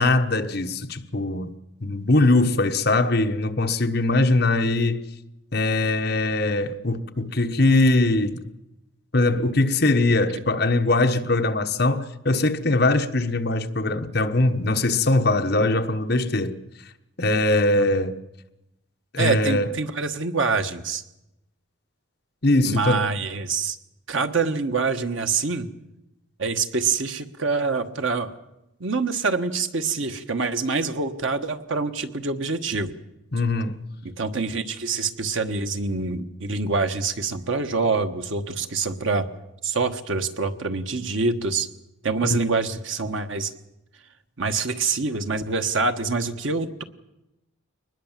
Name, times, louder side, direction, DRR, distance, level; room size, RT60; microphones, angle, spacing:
voice 1, 0.0-1.5 1.8-5.0 5.5-8.4 9.1-16.6 17.2-18.2 19.1-19.7 22.4-23.1 33.3-33.8 42.2-42.4, left 2 dB, 50° left, 1.2 m, -21 dB
voice 2, 19.2-21.0 22.6-23.8 24.1-25.7 26.4-28.3 28.8-32.9 34.0-39.3 39.6-41.7 42.0-43.5 44.4-46.8, right 4 dB, 70° right, 1.3 m, -25 dB
23.0 x 20.0 x 7.4 m
head